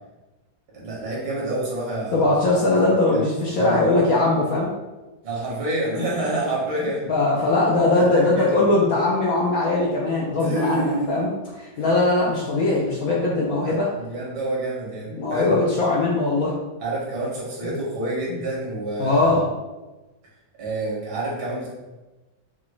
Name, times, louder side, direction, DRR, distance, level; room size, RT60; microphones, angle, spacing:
voice 1, 0.7-2.4 3.1-3.3 3.5-3.9 5.2-7.1 7.9-8.7 10.3-11.4 11.7-11.8 13.7-15.6 16.8-19.4 20.6-21.7, right 2 dB, 90° right, -5 dB, 2.2 m, -28 dB
voice 2, 2.1-4.7 7.1-11.3 11.8-13.9 15.1-16.5 17.6-17.7 18.3-18.4 19.0-19.5, left 2 dB, 70° left, -4 dB, 0.8 m, -20 dB
6.0 x 2.4 x 3.1 m, 1.1 s
omnidirectional pair, 2.1 m